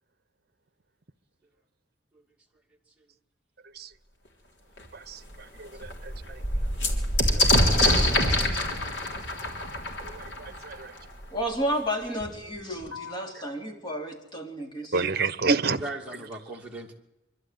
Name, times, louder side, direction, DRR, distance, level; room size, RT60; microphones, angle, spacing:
sound 1, 4.8-4.9 5.3-5.4 5.7-11.2 12.2-12.3 12.5-13.2, left 1 dB, 70° left, 3.4 m, -25 dB
voice 1, 5.6-5.9 7.4-8.0 10.1-10.9 14.9-15.8, right 4 dB, 55° right, 0.9 m, -29 dB
voice 2, 6.2-6.7 15.6-16.9, right 2 dB, 5° right, 2.6 m, -39 dB
voice 3, 11.3-15.0, equal, 25° left, 3.3 m, -31 dB
25.0 x 12.5 x 9.4 m
head